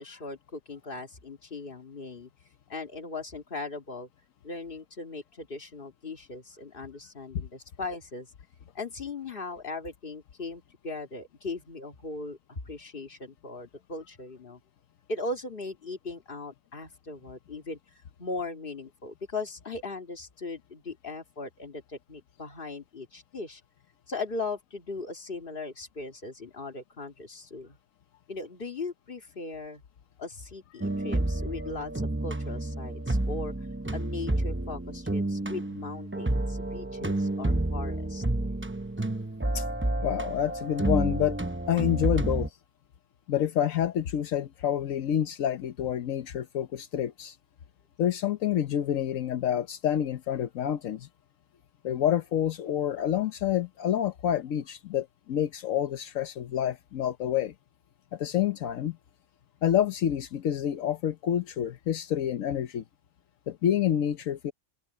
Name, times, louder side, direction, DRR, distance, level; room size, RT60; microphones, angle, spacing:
voice 1, 0.0-2.3 2.7-4.1 4.4-8.3 8.7-14.6 15.1-17.8 18.2-23.6 24.1-27.8 28.3-29.8 30.2-33.5 33.9-38.2, left 3 dB, 40° left, 2.2 m, -38 dB
sound 1, 30.8-42.5, right 1 dB, 10° right, 0.7 m, -30 dB
voice 2, 40.0-41.4 41.7-42.6 43.3-47.4 48.0-51.1 51.8-57.5 58.1-59.0 59.6-62.8 63.5-64.5, left 10 dB, 80° left, 1.2 m, -28 dB
open air
omnidirectional pair, 1.4 m